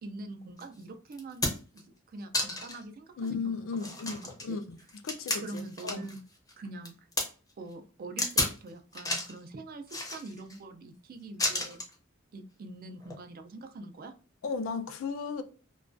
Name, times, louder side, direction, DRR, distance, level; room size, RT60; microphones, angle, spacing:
voice 1, 0.0-4.2 4.4-4.6 5.4-6.2 6.6-6.9 7.6-11.8 12.3-14.1, right 2 dB, 45° right, 0.4 m, -44 dB
sound 1, 0.6-0.7 1.1-1.8 2.3-2.8 3.3-3.4 3.8-6.2 6.5-7.3 8.2-8.6 8.9-9.4 9.9-10.6 11.4-11.9 13.0-13.2, left 2 dB, 20° left, 0.5 m, -32 dB
voice 2, 3.2-4.8 5.0-6.0 14.4-15.4, left 5 dB, 75° left, 0.4 m, -35 dB
2.3 x 2.2 x 2.4 m
head